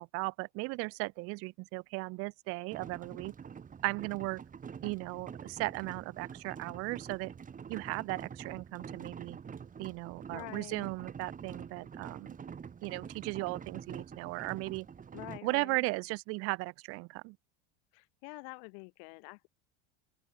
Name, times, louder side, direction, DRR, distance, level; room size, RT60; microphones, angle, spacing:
voice 1, 0.0-3.3 3.8-4.4 4.8-7.3 7.7-9.4 9.8-12.4 12.8-14.9 15.4-17.4, right 26 dB, 45° right, 0.4 m, -36 dB
sound 1, 2.7-15.4, right 7 dB, 25° right, 4.9 m, -46 dB
voice 2, 10.3-10.9 15.1-15.9 17.9-19.5, left 40 dB or more, 65° left, 6.2 m, -47 dB
open air
supercardioid pair, 130°, 35 cm